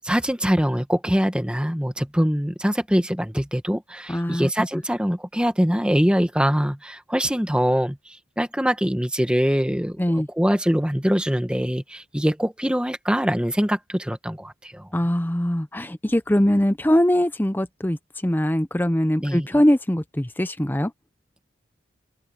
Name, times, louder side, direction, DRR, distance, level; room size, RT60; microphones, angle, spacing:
voice 1, 0.0-14.9 19.2-19.5, equal, 5° right, 1.3 m, -23 dB
voice 2, 4.1-4.7 10.0-10.3 14.9-18.0 18.2-20.9, equal, 10° left, 0.6 m, -22 dB
head